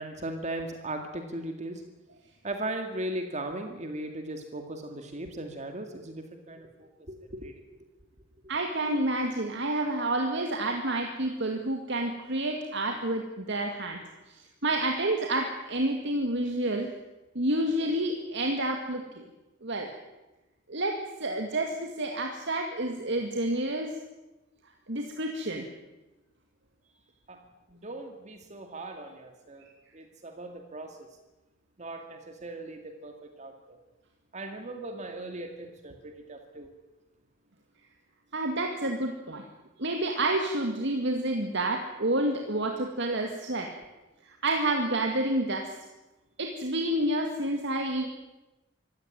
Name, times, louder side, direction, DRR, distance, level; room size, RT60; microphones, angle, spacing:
voice 1, 0.0-1.8 2.4-7.8 27.3-27.4 27.7-29.6 29.9-31.0 31.8-33.8 34.3-36.7, right 1 dB, 35° right, 5 dB, 2.1 m, -38 dB
voice 2, 8.5-14.0 14.3-16.9 17.3-19.2 19.6-19.9 20.7-23.9 24.9-25.7 38.3-39.4 39.8-43.7 44.2-45.7 46.4-48.1, right 1 dB, 65° right, 3 dB, 2.3 m, -29 dB
25.5 x 16.5 x 9.1 m, 1.0 s
head